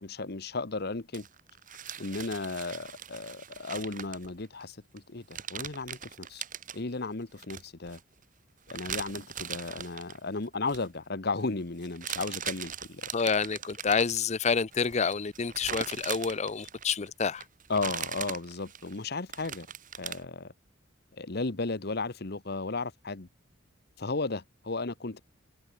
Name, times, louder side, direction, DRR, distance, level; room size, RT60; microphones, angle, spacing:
voice 1, 0.0-1.3 2.0-6.4 6.7-8.0 8.7-13.1 17.7-19.7 20.0-20.5 21.2-23.3 24.0-25.2, left 3 dB, 55° left, 1.2 m, -34 dB
sound 1, 1.1-4.6 5.0-5.1 5.3-6.8 7.4-8.0 8.7-10.2 10.5-10.9 11.8-14.2 14.7-17.1 17.4-20.3, right 8 dB, 40° right, 2.3 m, -40 dB
voice 2, 13.1-17.4, left 5 dB, 35° left, 0.6 m, -28 dB
head